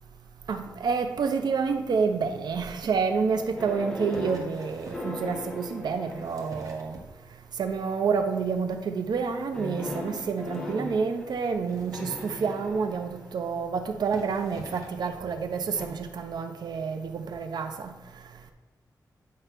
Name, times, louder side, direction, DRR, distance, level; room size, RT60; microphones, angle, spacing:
voice 1, 0.5-7.0 7.6-17.9, right 5 dB, 80° right, 0.7 m, -28 dB
sound 1, 3.6-6.9 7.7-8.1 9.5-13.7 15.7-15.9, left 1 dB, 10° left, 1.5 m, -38 dB
sound 2, 4.0-5.1 5.9-7.5 7.9-8.3 8.6-8.8 9.0-9.1 9.3-9.4 9.8-9.9 10.5-10.6 11.5-12.9 13.6-13.7 14.0-15.1 15.9-16.0, right 2 dB, 55° right, 1.3 m, -47 dB
9.6 x 3.4 x 5.9 m
wide cardioid pair, 165°, 7 cm